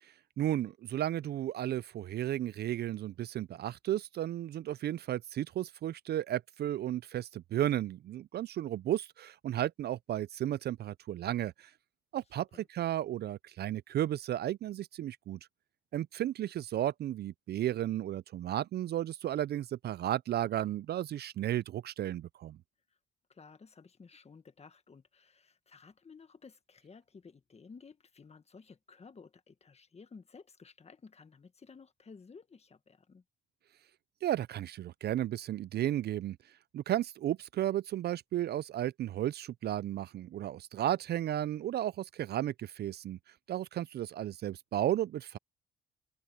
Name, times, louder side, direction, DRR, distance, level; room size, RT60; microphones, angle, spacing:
voice 1, 0.0-11.7 12.1-15.4 15.9-22.6 34.2-36.4 36.7-43.2 43.5-45.4, right 12 dB, 55° right, 0.4 m, -34 dB
voice 2, 23.3-33.2, left 5 dB, 30° left, 1.6 m, -55 dB
cardioid pair, 90°, 20 cm